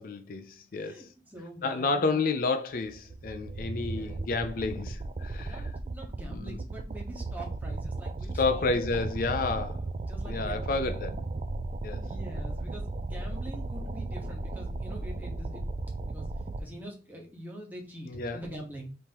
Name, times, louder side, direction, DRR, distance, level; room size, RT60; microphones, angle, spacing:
voice 1, 0.0-1.1 1.6-5.8 6.3-6.6 8.3-9.8 10.2-11.2 11.8-12.1 18.1-18.4, left 3 dB, 50° left, 0.4 m, -30 dB
voice 2, 0.7-2.2 3.7-4.2 5.4-9.1 10.1-11.2 12.0-15.6 16.1-16.3 16.6-18.8, right 1 dB, 10° right, 1.2 m, -44 dB
sound 1, 2.8-16.6, right 2 dB, 35° right, 0.3 m, -35 dB
5.3 x 2.9 x 2.9 m
head